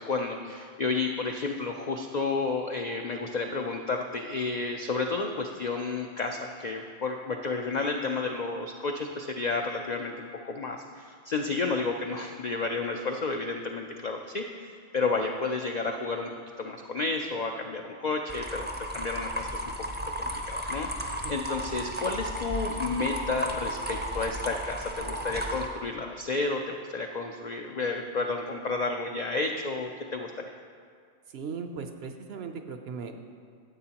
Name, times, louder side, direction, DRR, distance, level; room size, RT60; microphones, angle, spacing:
voice 1, 0.0-16.3 16.6-19.6 20.2-30.3, left 3 dB, 70° left, 3 dB, 0.4 m, -31 dB
sound 1, 18.3-25.6, equal, 15° right, 0.4 m, -34 dB
voice 2, 31.3-33.1, right 5 dB, 65° right, 6 dB, 0.7 m, -37 dB
13.5 x 7.6 x 2.9 m, 2.1 s
omnidirectional pair, 1.3 m